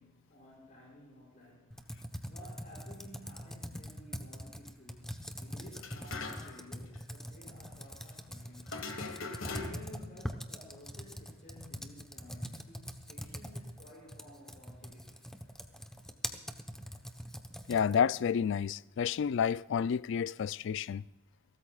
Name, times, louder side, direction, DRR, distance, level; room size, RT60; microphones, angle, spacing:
voice 1, 0.0-1.8 2.2-5.1 5.4-8.8 9.4-15.3, left 1 dB, 45° left, 6.3 m, -54 dB
Computer keyboard, 1.7-18.1, equal, 5° left, 0.9 m, -43 dB
sound 1, 5.8-6.7 6.9-7.0 8.7-10.0, left 4 dB, 85° left, 1.6 m, -41 dB
voice 2, 17.7-21.0, left 7 dB, 65° left, 0.3 m, -30 dB
29.0 x 13.5 x 2.4 m
head